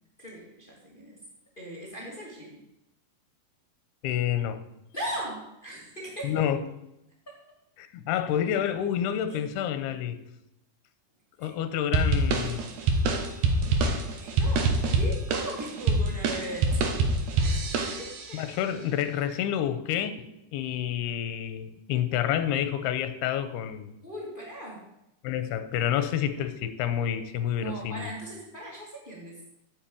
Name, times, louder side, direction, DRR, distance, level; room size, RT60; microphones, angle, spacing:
voice 1, 0.2-1.2 1.6-2.6 4.9-6.4 7.3-7.4 9.3-9.4 11.4-11.5 12.3-12.5 13.4-16.7 17.4-18.4 24.0-24.9 27.6-29.4, right 1 dB, 15° left, -3 dB, 2.0 m, -39 dB
voice 2, 4.0-4.6 6.2-6.6 7.8-10.2 11.4-12.7 18.3-23.9 25.2-28.1, left 10 dB, 85° left, 10 dB, 2.8 m, -29 dB
sound 1, 11.9-18.4, right 3 dB, 65° right, 2.3 m, -25 dB
8.9 x 7.6 x 8.5 m, 0.85 s
omnidirectional pair, 4.7 m